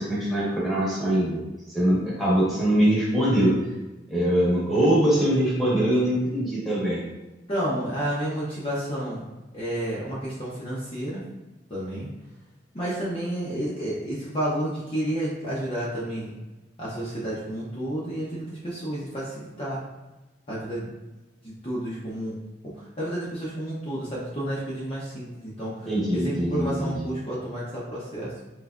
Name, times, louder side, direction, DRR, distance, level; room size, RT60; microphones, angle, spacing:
voice 1, 0.0-1.4 1.7-3.6 4.1-7.0 25.8-26.9, right 1 dB, ahead, -8 dB, 1.2 m, -22 dB
voice 2, 7.5-9.2 9.5-11.2 11.7-12.1 12.7-16.3 16.8-19.8 20.5-20.9 21.4-22.4 22.6-28.4, right 1 dB, 30° left, -8 dB, 0.7 m, -31 dB
3.5 x 3.1 x 2.4 m, 1.1 s
head